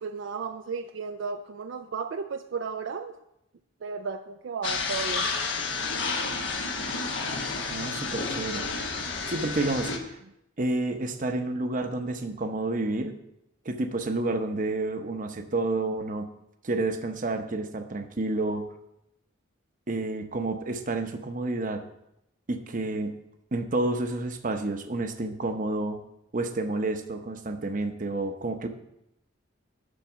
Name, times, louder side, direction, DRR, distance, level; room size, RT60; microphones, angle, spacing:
voice 1, 0.0-3.1 3.8-5.3, right 5 dB, 65° right, 7 dB, 0.4 m, -34 dB
sound 1, 4.6-10.0, left 4 dB, 70° left, 1.2 m, -30 dB
voice 2, 7.7-8.7 9.3-10.2 10.6-13.2 13.6-16.3 16.6-18.7 19.9-21.8 22.5-23.2 23.5-26.0 26.3-28.7, right 2 dB, 40° right, 7 dB, 0.8 m, -30 dB
11.5 x 4.1 x 5.8 m, 0.83 s
head